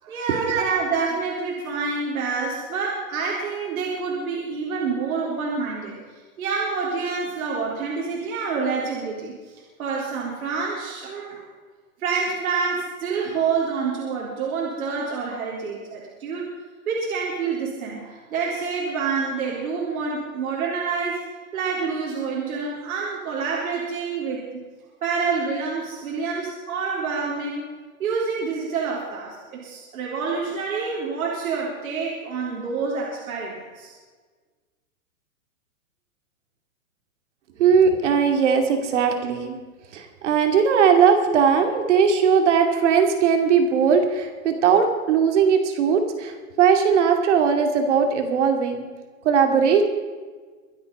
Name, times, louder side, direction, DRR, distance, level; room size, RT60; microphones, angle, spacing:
voice 1, 0.0-6.0 6.4-9.5 9.8-11.4 12.0-16.5 16.9-21.2 21.5-24.6 25.0-27.6 28.0-33.9, right 5 dB, 75° right, -3 dB, 3.7 m, -27 dB
voice 2, 37.6-39.6 39.9-48.8 49.2-49.8, right 6 dB, 55° right, 5 dB, 2.7 m, -19 dB
24.0 x 8.3 x 5.4 m, 1.4 s
hypercardioid pair, 170°, 42 cm